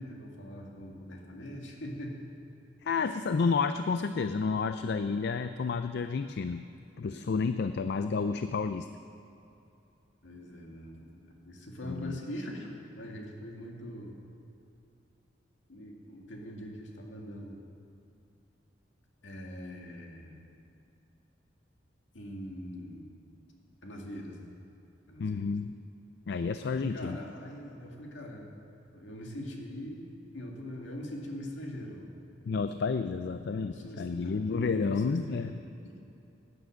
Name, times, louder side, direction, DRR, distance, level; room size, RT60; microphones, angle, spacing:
voice 1, 0.0-2.2 7.1-7.3 10.2-14.2 15.7-17.6 19.2-20.4 22.1-23.1 23.8-24.5 25.1-25.4 26.7-28.5 28.9-30.1 30.3-32.1 33.5-35.6, equal, 75° left, -1 dB, 2.2 m, -42 dB
voice 2, 2.8-6.6 7.0-8.9 11.8-12.2 25.2-25.7 26.3-27.2 32.5-35.6, left 4 dB, 60° left, 10 dB, 0.4 m, -30 dB
16.5 x 9.6 x 6.4 m, 2.8 s
head